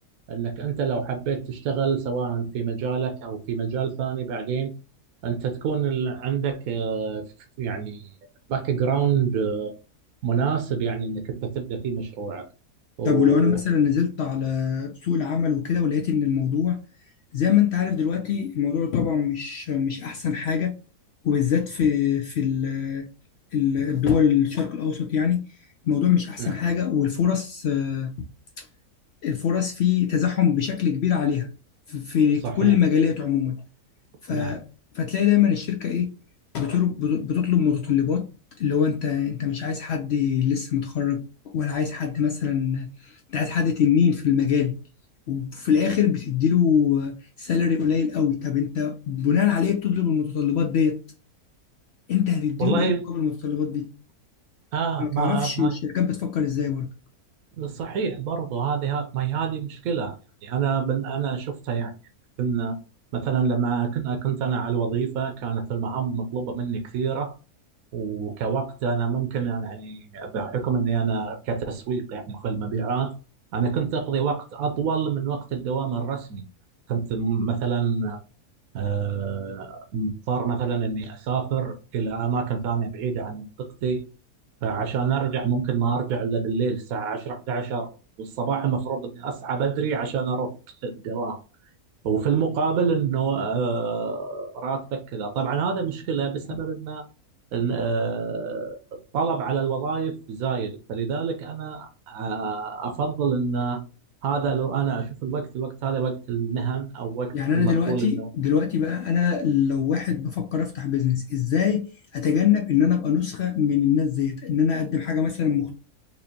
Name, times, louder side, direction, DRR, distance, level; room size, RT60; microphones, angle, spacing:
voice 1, 0.3-4.7 5.2-7.3 7.6-8.1 8.5-9.7 10.2-12.5 13.0-13.6 26.4-26.5 32.4-32.7 34.3-34.6 52.6-53.0 54.7-55.8 57.6-60.1 60.4-62.0 62.4-62.7 63.1-67.3 67.9-73.1 73.5-76.4 76.9-78.2 78.7-84.0 84.6-87.9 88.2-91.4 92.0-97.0 97.5-98.8 99.1-103.8 104.2-108.3, right 6 dB, 70° right, 1.1 m, -27 dB
voice 2, 13.0-16.8 17.3-20.7 21.2-23.1 23.5-25.4 25.8-28.1 28.6-28.7 29.2-31.5 31.9-33.6 34.2-34.6 34.9-36.1 36.5-38.3 38.6-44.7 45.3-51.0 52.1-53.9 55.0-56.9 107.3-111.9 112.1-115.8, left 8 dB, 70° left, 0.6 m, -23 dB
4.4 x 2.7 x 2.7 m
omnidirectional pair, 1.6 m